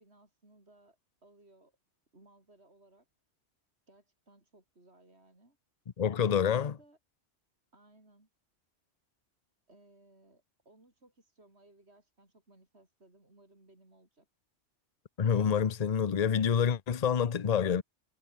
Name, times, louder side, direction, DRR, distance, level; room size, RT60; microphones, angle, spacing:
voice 1, 0.0-1.8 2.1-3.1 3.9-5.6 6.3-7.0 7.7-8.3 9.7-14.3, right 2 dB, 60° right, 5.7 m, -62 dB
voice 2, 6.0-6.7 15.2-17.8, left 7 dB, 40° left, 0.8 m, -27 dB
omnidirectional pair, 1.2 m